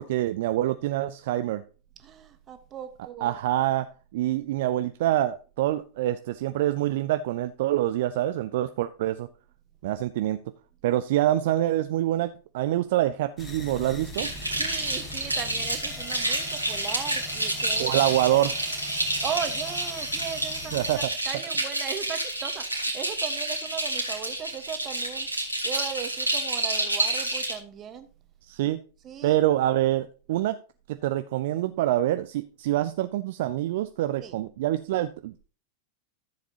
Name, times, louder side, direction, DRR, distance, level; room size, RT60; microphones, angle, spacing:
voice 1, 0.0-1.6 3.2-3.9 4.1-9.3 9.8-10.4 10.8-14.3 17.8-18.5 20.7-21.1 28.5-28.8 29.2-30.6 31.0-35.4, right 14 dB, 55° right, 10 dB, 0.4 m, -26 dB
voice 2, 2.0-3.3 14.5-17.9 19.2-20.8 21.2-28.1 29.0-29.4 34.2-34.4, right 8 dB, 30° right, 9 dB, 1.3 m, -37 dB
sound 1, 13.4-21.1, left 2 dB, 20° left, 2.3 m, -41 dB
sound 2, 14.1-27.5, right 2 dB, 85° right, 2.3 m, -29 dB
13.5 x 7.2 x 2.9 m, 0.37 s
figure-of-eight pair, 90°, 0 cm